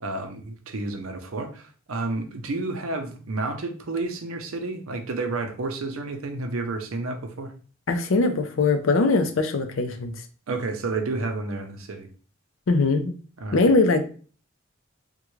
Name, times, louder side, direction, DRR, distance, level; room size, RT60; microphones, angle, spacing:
voice 1, 0.0-7.5 10.5-12.1 13.4-13.7, right 3 dB, 85° right, 6 dB, 0.6 m, -30 dB
voice 2, 7.9-10.1 12.7-13.1 13.5-14.1, left 3 dB, 70° left, 8 dB, 0.5 m, -21 dB
3.6 x 2.2 x 3.1 m, 0.40 s
head